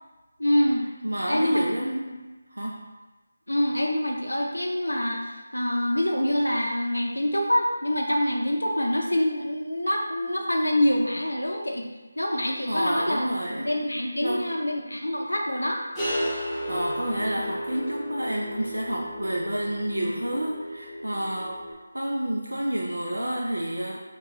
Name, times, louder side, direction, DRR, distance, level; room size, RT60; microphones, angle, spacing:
voice 1, 0.4-0.9 1.3-1.6 3.5-11.9 12.2-13.3 13.6-15.8, left 1 dB, 80° left, 1 dB, 0.5 m, -25 dB
voice 2, 1.0-2.2 2.5-2.8 12.7-13.7 14.2-14.5 16.4-24.1, right 1 dB, 80° right, -2 dB, 0.4 m, -29 dB
sound 1, 15.9-21.7, equal, ahead, 0.6 m, -33 dB
3.3 x 2.2 x 3.0 m, 1.2 s
figure-of-eight pair, 160°, 0 cm